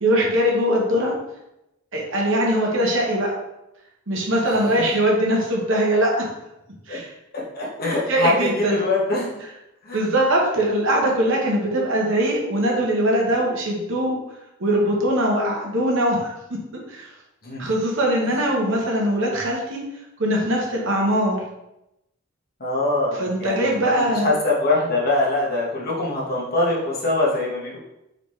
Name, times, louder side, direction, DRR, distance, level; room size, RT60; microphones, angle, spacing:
voice 1, 0.0-1.1 1.9-3.4 4.1-6.3 6.9-7.1 8.1-8.8 9.9-14.2 14.6-16.3 16.7-17.1 17.6-19.8 20.2-21.4 23.2-24.3, right 1 dB, 65° right, -1 dB, 1.0 m, -21 dB
voice 2, 7.3-9.4 9.8-10.0 17.4-17.6 22.6-27.8, left 2 dB, 50° left, -5 dB, 1.3 m, -23 dB
4.0 x 3.6 x 3.2 m, 0.89 s
head